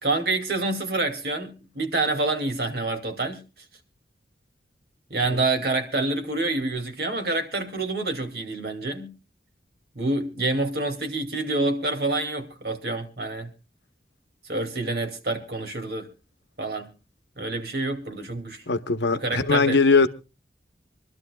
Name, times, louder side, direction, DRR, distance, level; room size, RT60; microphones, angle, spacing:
voice 1, 0.0-3.4 5.1-9.1 10.0-13.5 14.4-16.1 16.6-16.9 17.4-18.6 19.1-20.0, right 2 dB, 60° right, 2.4 m, -27 dB
voice 2, 18.7-20.1, left 4 dB, 75° left, 0.9 m, -20 dB
26.5 x 12.0 x 2.3 m
head